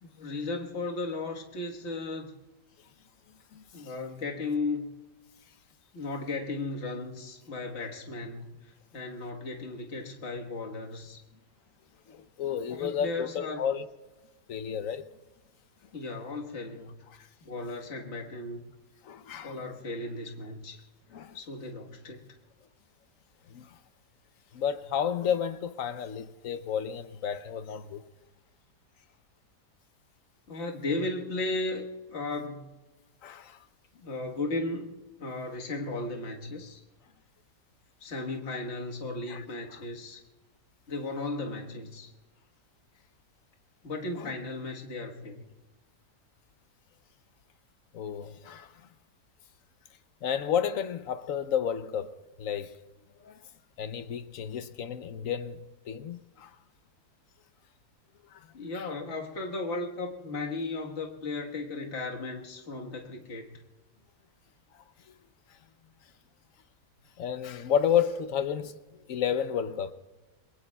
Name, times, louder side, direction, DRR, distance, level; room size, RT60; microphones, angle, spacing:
voice 1, 0.0-2.3 3.7-4.9 5.9-8.5 8.9-11.2 12.7-13.7 15.9-17.0 17.4-18.7 19.4-20.8 21.3-22.3 30.5-32.7 33.9-34.9 35.2-36.8 38.0-40.2 40.9-42.1 43.8-45.4 58.5-63.6, left 2 dB, 45° left, 1.7 m, -35 dB
voice 2, 12.1-13.9 14.5-15.0 19.0-19.5 21.1-21.4 23.5-23.7 24.5-28.0 33.2-33.6 39.3-39.4 44.2-44.3 47.9-48.7 50.2-52.8 53.2-53.4 53.8-55.6 55.9-56.5 67.2-68.7 69.1-69.9, left 8 dB, 60° left, 1.0 m, -31 dB
28.0 x 21.5 x 2.3 m
omnidirectional pair, 1.8 m